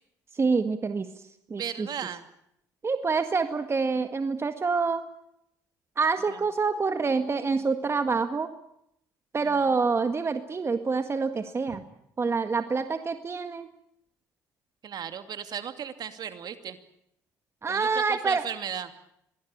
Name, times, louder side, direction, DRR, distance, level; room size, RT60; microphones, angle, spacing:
voice 1, 0.3-1.1 1.5-1.9 2.8-5.0 6.0-8.5 9.3-11.8 12.2-13.7 17.6-18.5, right 4 dB, 30° right, 9 dB, 1.8 m, -26 dB
voice 2, 1.5-2.3 6.3-6.4 9.4-9.7 11.7-11.8 14.8-16.8 17.7-18.9, right 8 dB, 55° right, 9 dB, 2.6 m, -36 dB
26.0 x 20.0 x 8.8 m, 0.77 s
hypercardioid pair, 60°, 8 cm